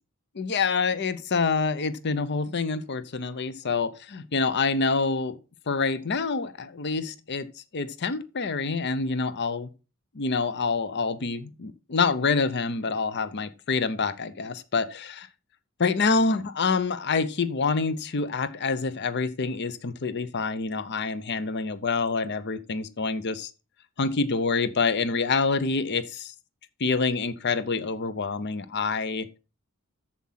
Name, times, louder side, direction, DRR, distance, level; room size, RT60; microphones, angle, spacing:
voice 1, 0.3-5.4 5.7-7.5 7.7-9.7 10.1-15.3 15.8-23.5 24.0-26.3 26.8-29.4, left 4 dB, 50° left, 0.7 m, -27 dB
7.7 x 7.5 x 5.7 m
head